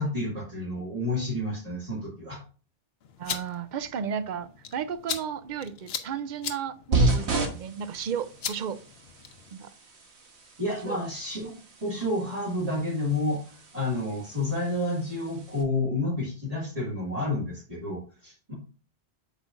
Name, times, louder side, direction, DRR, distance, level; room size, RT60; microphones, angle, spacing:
voice 1, 0.0-2.4 10.6-13.4 13.7-18.5, left 2 dB, 35° right, 2.2 m, -30 dB
sound 1, 3.0-9.5, left 7 dB, 70° left, 1.0 m, -39 dB
voice 2, 3.2-8.8 9.5-9.7 10.9-11.0, right 7 dB, 55° right, 0.6 m, -34 dB
sound 2, 6.9-15.6, right 2 dB, 85° right, 1.5 m, -33 dB
8.3 x 5.5 x 2.5 m
omnidirectional pair, 1.1 m